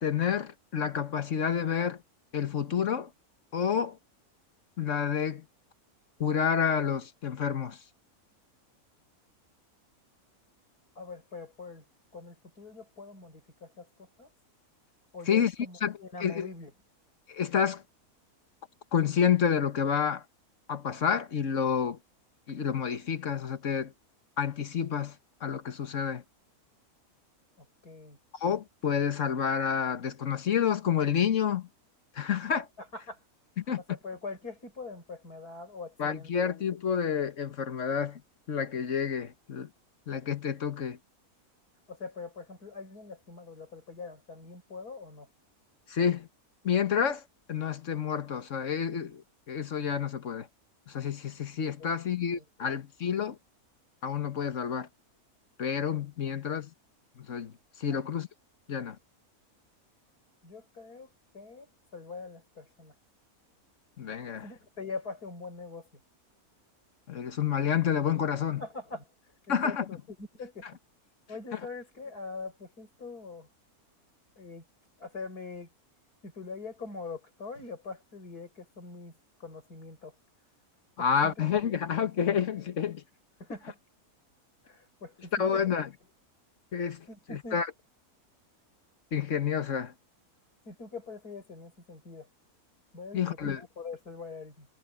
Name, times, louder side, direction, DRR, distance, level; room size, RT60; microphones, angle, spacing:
voice 1, 0.0-2.0 2.3-3.1 3.5-4.0 4.8-5.4 6.2-7.8 15.3-15.5 15.8-16.5 17.3-17.8 18.9-20.2 20.7-22.0 22.5-23.9 24.4-25.1 25.4-26.2 28.4-31.7 32.1-32.7 33.6-33.8 36.0-38.2 38.5-39.7 40.1-41.0 45.9-46.3 46.6-47.2 47.5-49.2 49.5-50.5 50.9-53.4 54.0-54.9 55.6-56.7 57.3-57.5 57.8-58.3 58.7-59.0 64.0-64.5 67.1-68.6 69.5-69.8 81.0-83.0 85.4-85.9 86.7-87.7 89.1-89.9 93.1-93.6, left 7 dB, 55° left, 1.5 m, -29 dB
voice 2, 11.0-11.8 12.1-14.3 15.1-16.7 27.6-28.2 32.8-33.2 33.8-36.3 41.9-45.3 51.8-51.9 52.3-52.8 57.9-58.0 60.4-61.1 61.3-62.9 64.4-65.9 68.6-70.8 71.3-73.5 74.4-74.6 75.0-75.7 76.2-79.1 79.4-80.1 81.0-81.3 81.6-81.7 83.4-83.8 84.6-85.6 87.1-87.6 90.7-92.3 92.9-94.7, left 4 dB, 85° left, 6.2 m, -43 dB
omnidirectional pair, 1.6 m